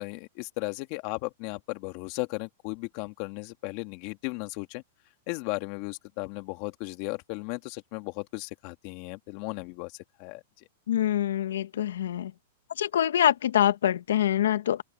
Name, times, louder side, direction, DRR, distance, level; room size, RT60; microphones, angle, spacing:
voice 1, 0.0-4.8 5.3-10.7, left 24 dB, 40° left, 2.3 m, -36 dB
voice 2, 10.9-12.3 12.8-14.8, left 11 dB, 80° left, 1.3 m, -25 dB
supercardioid pair, 155°, 0 cm